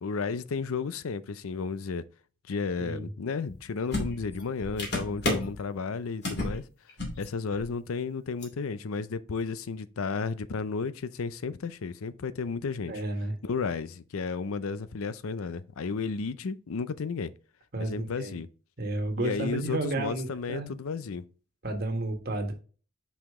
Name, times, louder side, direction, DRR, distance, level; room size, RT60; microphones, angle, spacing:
voice 1, 0.0-2.0 2.5-6.6 7.2-12.9 13.4-17.3 17.8-18.5 19.2-21.2, left 5 dB, 90° left, 0.5 m, -33 dB
sound 1, 3.5-3.6 3.9-5.6 6.2-6.6 6.9-7.3 7.5-7.7 8.4-8.5, left 1 dB, 50° left, 2.4 m, -32 dB
voice 2, 12.9-13.3 17.7-18.4 18.8-20.7 21.6-22.5, right 2 dB, 45° right, 1.5 m, -32 dB
5.7 x 5.0 x 3.6 m
head